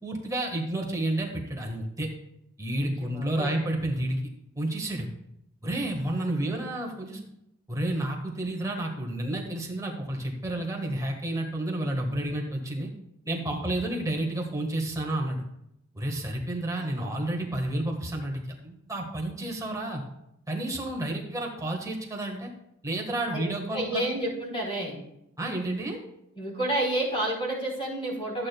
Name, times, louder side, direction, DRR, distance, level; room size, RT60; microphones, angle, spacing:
voice 1, 0.0-2.1 2.6-4.2 4.6-5.1 5.6-7.2 7.7-12.9 13.3-15.4 15.9-20.0 20.5-22.5 22.8-24.0 25.4-26.0, right 1 dB, 15° right, 0 dB, 1.5 m, -30 dB
voice 2, 2.8-3.6 16.8-17.2 23.3-23.4 23.7-25.0 26.4-28.5, right 1 dB, 25° left, -3 dB, 3.8 m, -30 dB
14.0 x 8.6 x 2.3 m, 0.81 s
head